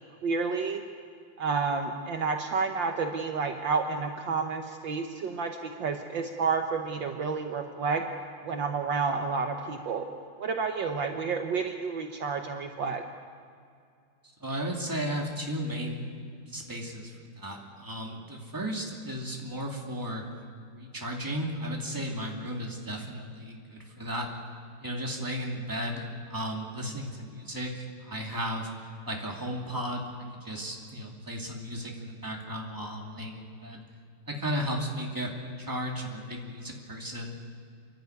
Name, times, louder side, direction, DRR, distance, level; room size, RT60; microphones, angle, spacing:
voice 1, 0.2-0.8 1.4-8.0 8.4-10.0 10.4-13.0, right 4 dB, 65° right, 4 dB, 1.7 m, -30 dB
voice 2, 14.4-16.0 16.5-20.3 20.7-24.3 24.8-28.7 29.1-33.8 34.3-37.3, equal, 10° right, 0 dB, 2.5 m, -35 dB
29.0 x 12.0 x 9.4 m, 2.3 s
omnidirectional pair, 2.4 m